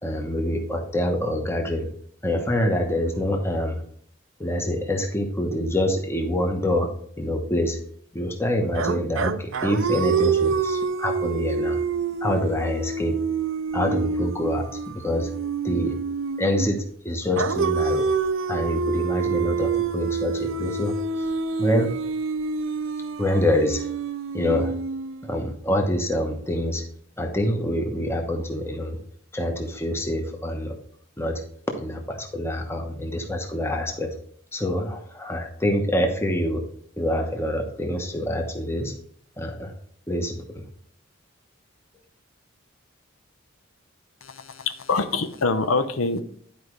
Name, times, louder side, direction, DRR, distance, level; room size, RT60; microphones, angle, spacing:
voice 1, 0.0-1.9 2.2-3.8 4.4-6.9 7.2-7.8 8.1-11.8 12.2-13.2 13.7-15.3 15.6-15.9 16.4-18.1 18.5-21.3 21.6-21.9 23.2-23.8 24.3-24.7 25.2-26.8 27.2-29.0 29.3-30.7 31.2-31.4 31.8-34.1 34.5-36.6 37.0-38.9 39.4-39.7 40.1-40.6, left 1 dB, 10° left, 3 dB, 1.0 m, -26 dB
sound 1, 8.7-16.8 17.4-25.4, right 5 dB, 75° right, 0.5 m, -27 dB
voice 2, 44.2-46.2, left 3 dB, 80° left, 9 dB, 0.7 m, -25 dB
10.5 x 4.9 x 3.1 m, 0.62 s
head